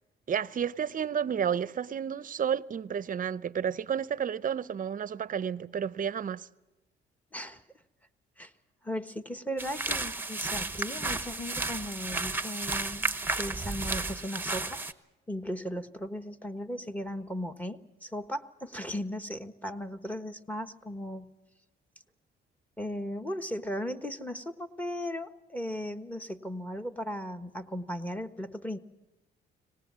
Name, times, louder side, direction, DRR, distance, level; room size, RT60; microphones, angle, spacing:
voice 1, 0.3-6.4, right 8 dB, 45° right, 0.7 m, -31 dB
voice 2, 8.8-13.0 13.4-14.8 15.3-21.3 22.8-28.8, equal, 5° left, 1.4 m, -37 dB
sound 1, 9.6-14.9, right 3 dB, 10° right, 1.0 m, -33 dB
24.0 x 19.0 x 7.5 m
cardioid pair, 90°, 20 cm